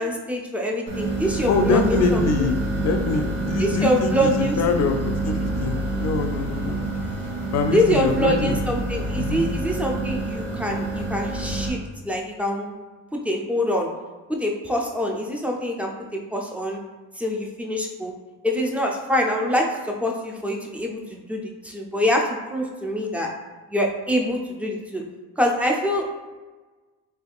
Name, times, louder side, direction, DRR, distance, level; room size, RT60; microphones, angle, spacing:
voice 1, 0.0-2.3 3.6-4.6 7.7-11.8 12.0-12.8 13.1-13.9 14.3-16.8 17.2-18.1 18.4-23.3 23.7-25.0 25.4-26.3, equal, 5° right, 0 dB, 0.5 m, -25 dB
sound 1, 0.9-11.7, right 2 dB, 50° right, 1.2 m, -27 dB
voice 2, 1.5-5.0 5.2-6.9 7.5-8.6 9.1-9.5, left 4 dB, 60° left, 6 dB, 0.5 m, -24 dB
3.4 x 3.2 x 2.4 m, 1.3 s
cardioid pair, 90°, 30 cm